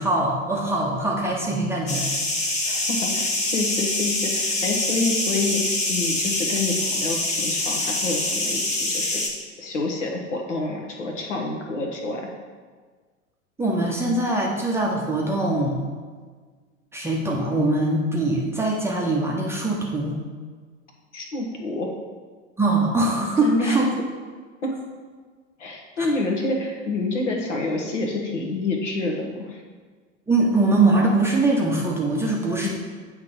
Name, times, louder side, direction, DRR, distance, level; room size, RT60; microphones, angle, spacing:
voice 1, 0.0-2.1 13.6-15.8 16.9-20.2 22.6-23.9 26.0-26.1 30.3-32.7, right 2 dB, 5° right, -3 dB, 0.7 m, -22 dB
sound 1, 1.9-9.3, left 2 dB, 15° left, 0.9 m, -25 dB
voice 2, 2.1-9.2 9.6-12.3 21.1-21.9 23.4-23.8 24.6-24.7 25.6-29.6 32.6-32.7, left 2 dB, 65° left, 1 dB, 1.3 m, -28 dB
8.3 x 3.2 x 5.2 m, 1.5 s
figure-of-eight pair, 90°, 39 cm